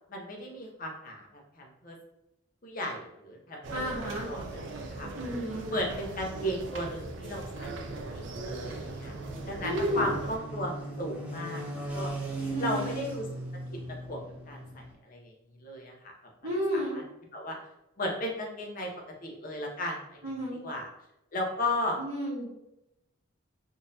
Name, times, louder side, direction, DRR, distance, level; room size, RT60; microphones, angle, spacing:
voice 1, 0.1-2.0 2.6-5.1 5.7-7.7 8.1-9.1 9.5-12.1 12.6-13.3 14.1-15.3 15.6-16.1 16.4-17.0 17.3-17.6 18.0-18.9 19.2-20.2 20.6-20.9 21.3-22.0, left 1 dB, 40° left, 0 dB, 0.6 m, -35 dB
sound 1, 3.6-10.4, right 2 dB, 60° right, 0.4 m, -39 dB
voice 2, 3.7-4.3 5.2-5.7 9.6-10.1 12.5-13.0 16.4-17.0 20.2-20.6 22.0-22.5, equal, 85° right, -11 dB, 1.2 m, -32 dB
sound 2, 7.6-14.9, right 2 dB, 5° right, 0.5 m, -39 dB
3.7 x 2.5 x 2.6 m, 0.87 s
head